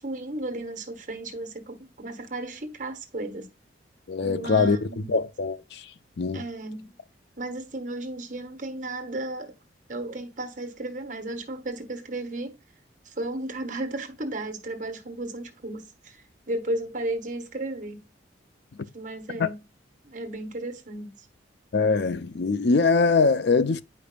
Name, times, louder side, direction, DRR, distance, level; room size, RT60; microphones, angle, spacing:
voice 1, 0.0-3.5 4.2-5.2 6.3-6.9 7.4-9.5 9.9-12.6 13.0-18.0 18.9-19.6 20.0-21.3, right 2 dB, 40° right, 1.3 m, -34 dB
voice 2, 4.1-4.8 5.1-5.8 6.2-6.4 19.4-19.5 21.7-23.8, left 4 dB, 60° left, 0.5 m, -22 dB
9.6 x 5.1 x 2.3 m
head